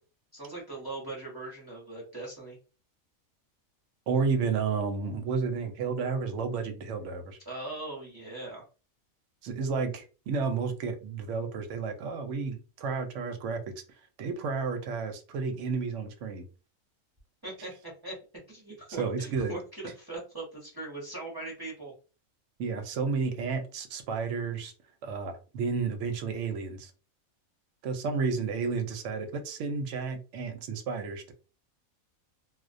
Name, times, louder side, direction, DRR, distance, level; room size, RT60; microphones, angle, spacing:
voice 1, 0.3-2.6 7.5-8.6 17.4-17.7 18.0-18.1 18.5-21.9, right 2 dB, 20° right, -3 dB, 0.7 m, -40 dB
voice 2, 4.1-7.4 9.4-13.7 14.2-16.4 19.0-19.5 22.6-24.7 25.0-26.9 27.8-31.3, right 5 dB, 70° right, 7 dB, 0.8 m, -31 dB
2.3 x 2.1 x 2.5 m, 0.35 s
omnidirectional pair, 1.4 m